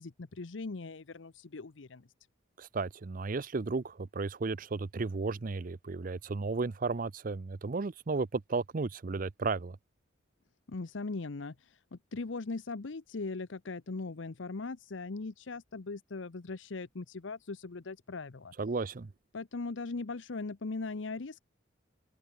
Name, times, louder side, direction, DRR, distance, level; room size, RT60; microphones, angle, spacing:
voice 1, 0.0-2.1 10.7-18.5 19.3-21.4, left 3 dB, 85° left, 0.8 m, -39 dB
voice 2, 2.6-9.8 18.6-19.1, right 4 dB, 45° right, 0.5 m, -34 dB
open air
head